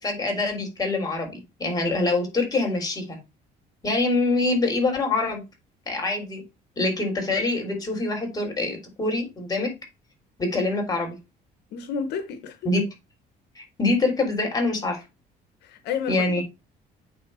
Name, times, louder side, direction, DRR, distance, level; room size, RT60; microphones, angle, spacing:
voice 1, 0.0-3.2 3.8-5.4 5.9-6.4 6.8-9.7 10.4-11.2 12.7-12.8 13.6-15.0 16.1-16.4, left 2 dB, 20° left, 3.6 m, -25 dB
voice 2, 11.7-12.6 15.6-16.4, left 6 dB, 80° left, 1.1 m, -30 dB
8.8 x 3.5 x 5.5 m
cardioid pair, 110°, 17 cm